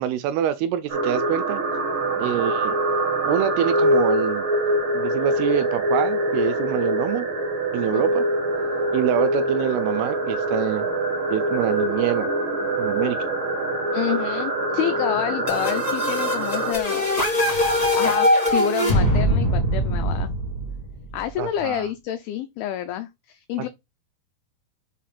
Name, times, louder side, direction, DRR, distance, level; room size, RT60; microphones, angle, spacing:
voice 1, 0.0-1.6 2.2-2.8 3.2-4.4 4.9-7.3 7.7-8.2 8.9-10.9 11.3-12.3 12.8-13.2 21.4-21.8, right 11 dB, 85° right, 2.3 m, -25 dB
sound 1, 0.9-16.7, right 1 dB, 70° right, 1.1 m, -24 dB
voice 2, 13.9-17.1 17.7-20.3 21.1-23.1 23.3-23.7, left 11 dB, 85° left, 2.1 m, -28 dB
sound 2, 15.5-21.1, left 1 dB, 40° left, 0.5 m, -22 dB
7.2 x 2.5 x 5.6 m
omnidirectional pair, 4.8 m